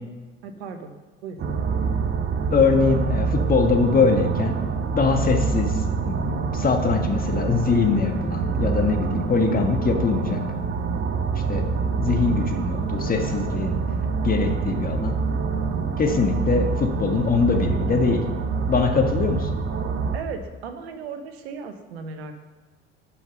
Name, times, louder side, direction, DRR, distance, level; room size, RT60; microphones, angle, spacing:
voice 1, 0.4-0.9 1.2-1.4 20.1-22.4, right 5 dB, 70° right, 8 dB, 1.2 m, -36 dB
sound 1, 1.4-20.2, right 5 dB, 35° right, 1.1 m, -26 dB
voice 2, 2.5-4.6 4.9-5.8 6.0-10.4 11.5-13.8 14.2-15.2 16.0-18.2 18.7-19.6, left 5 dB, 25° left, 4 dB, 1.6 m, -22 dB
11.0 x 5.8 x 5.3 m, 1.3 s
figure-of-eight pair, 60°, 32 cm